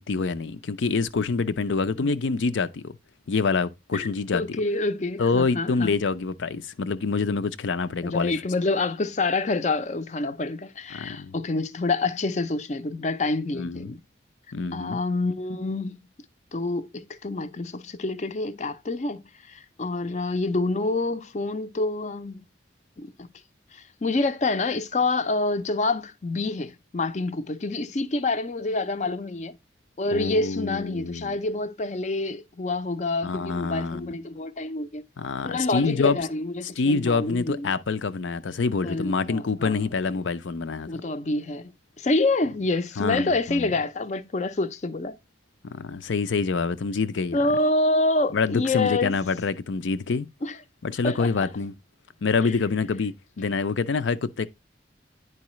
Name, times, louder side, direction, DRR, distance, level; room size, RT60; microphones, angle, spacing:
voice 1, 0.0-2.9 3.3-4.6 5.2-8.3 10.9-11.3 13.5-14.0 14.5-15.0 30.1-31.4 33.2-34.1 35.2-36.2 36.6-40.9 43.0-43.7 45.6-47.4 48.3-50.3 50.8-51.7 52.2-54.5, left 4 dB, 85° left, 0.5 m, -26 dB
voice 2, 4.3-6.0 8.0-14.0 14.7-16.0 16.5-22.4 23.0-23.3 23.7-29.6 30.0-35.1 35.4-37.7 38.8-40.1 40.9-41.7 42.0-45.2 47.3-49.2 50.4-50.6 51.0-51.5 52.4-52.6, left 2 dB, 40° left, 0.5 m, -27 dB
9.7 x 4.7 x 3.0 m
head